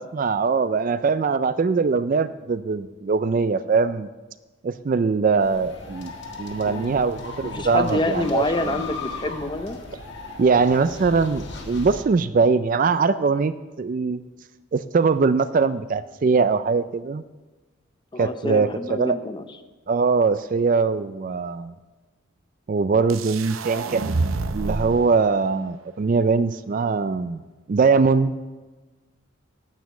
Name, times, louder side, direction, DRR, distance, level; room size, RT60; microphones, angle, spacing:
voice 1, 0.0-4.1 4.6-6.1 6.4-8.8 10.4-14.2 14.7-17.2 18.2-19.2 19.9-21.7 22.7-24.2 24.5-27.4 27.7-28.3, right 4 dB, 40° right, 13 dB, 0.3 m, -22 dB
sound 1, 5.4-12.0, left 3 dB, 55° left, 1.5 m, -37 dB
voice 2, 7.4-9.8 18.1-19.4, left 1 dB, 20° left, 9 dB, 0.7 m, -27 dB
sound 2, 23.1-25.1, right 3 dB, 80° right, 0.7 m, -27 dB
9.5 x 9.1 x 7.1 m, 1.2 s
head